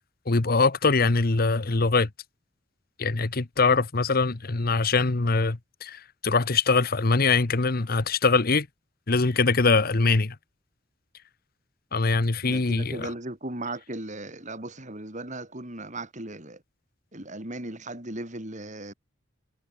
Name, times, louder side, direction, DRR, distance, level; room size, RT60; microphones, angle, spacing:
voice 1, 0.3-2.1 3.0-8.7 9.1-10.3 11.9-13.1, left 4 dB, 50° left, 1.0 m, -23 dB
voice 2, 12.4-16.6 17.1-18.9, right 2 dB, 40° right, 4.6 m, -37 dB
head